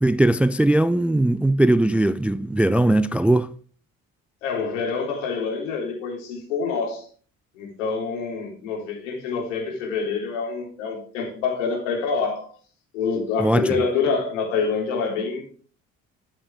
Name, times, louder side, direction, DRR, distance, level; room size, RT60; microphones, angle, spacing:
voice 1, 0.0-3.5 13.4-13.7, right 1 dB, 5° right, 0.4 m, -19 dB
voice 2, 4.4-7.1 7.5-12.5 12.9-15.4, left 5 dB, 70° left, 3.7 m, -26 dB
13.0 x 7.4 x 3.4 m
figure-of-eight pair, 50°, 39 cm